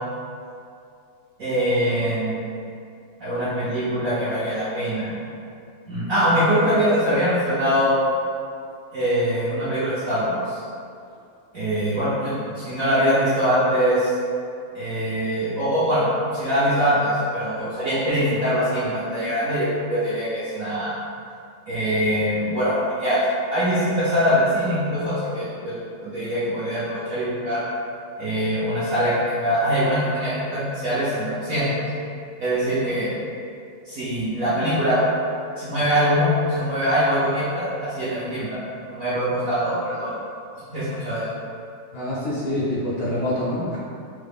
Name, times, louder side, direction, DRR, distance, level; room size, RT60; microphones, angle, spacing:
voice 1, 1.4-2.3 3.2-5.1 5.9-8.0 8.9-10.6 11.5-14.1 14.7-16.1 16.3-20.9 21.7-23.2 23.5-25.8 26.0-27.6 28.2-31.7 32.4-33.1 33.8-35.0 35.6-38.6 38.9-40.1 40.7-41.2, equal, 65° right, -12 dB, 0.8 m, -23 dB
voice 2, 41.9-43.8, left 1 dB, 70° left, -7 dB, 1.1 m, -25 dB
3.6 x 2.1 x 3.4 m, 2.5 s
omnidirectional pair, 2.3 m